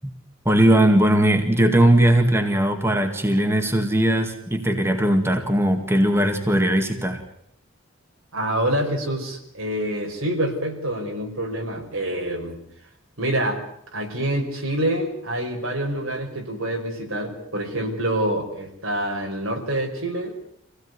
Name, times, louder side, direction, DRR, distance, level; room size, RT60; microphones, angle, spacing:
voice 1, 0.5-7.2, right 1 dB, 10° right, 4 dB, 2.1 m, -19 dB
voice 2, 8.3-12.6 13.2-13.6 13.9-20.3, right 1 dB, 80° right, 2 dB, 5.2 m, -26 dB
26.0 x 17.0 x 9.5 m, 0.73 s
head